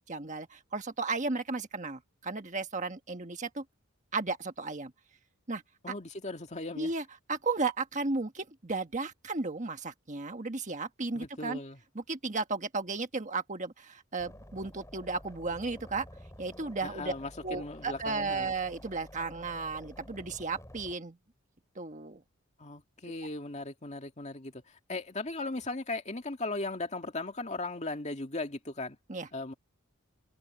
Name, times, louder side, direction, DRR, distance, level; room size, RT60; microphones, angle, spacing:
voice 1, 0.1-3.6 4.1-4.9 5.5-5.9 6.8-11.6 11.9-16.0 16.4-17.1 17.4-21.2 21.7-22.2 29.1-29.3, right 3 dB, 35° right, 1.4 m, -34 dB
voice 2, 5.8-6.9 11.1-11.8 16.8-18.5 22.6-29.0 29.3-29.5, left 2 dB, 30° left, 2.2 m, -37 dB
sound 1, 14.2-20.9, left 1 dB, 15° left, 4.3 m, -50 dB
head